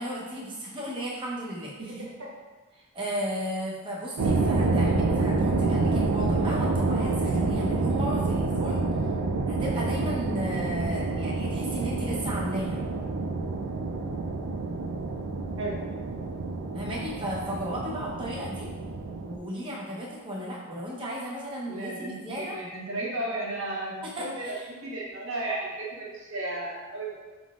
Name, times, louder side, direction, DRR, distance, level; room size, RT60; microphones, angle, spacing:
voice 1, 0.0-2.0 2.7-8.8 9.5-12.8 16.7-18.7 19.3-22.6 24.0-24.7, equal, 25° right, -5 dB, 0.8 m, -34 dB
voice 2, 1.8-2.3 15.6-15.8 21.7-27.2, right 2 dB, 65° right, -4 dB, 1.1 m, -34 dB
sound 1, 4.2-19.4, right 3 dB, 85° right, 0.4 m, -28 dB
5.1 x 3.8 x 2.4 m, 1.3 s
head